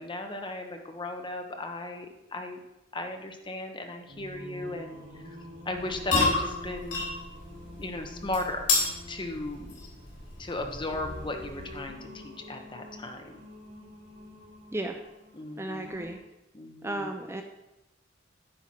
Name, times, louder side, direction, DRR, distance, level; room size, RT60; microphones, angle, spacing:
voice 1, 0.0-2.6 2.9-5.0 5.2-5.4 5.6-7.0 7.8-8.7 9.1-9.8 10.4-13.4 15.3-16.0 16.5-17.1, left 2 dB, 25° left, 4 dB, 1.0 m, -36 dB
Singing, 4.1-16.2, equal, 85° right, 2.2 m, -47 dB
sound 1, 5.7-12.1, left 3 dB, 80° left, 3.5 m, -32 dB
voice 2, 15.6-16.2 16.8-17.4, right 1 dB, 15° right, 4 dB, 0.5 m, -34 dB
9.8 x 4.5 x 6.0 m, 0.93 s
head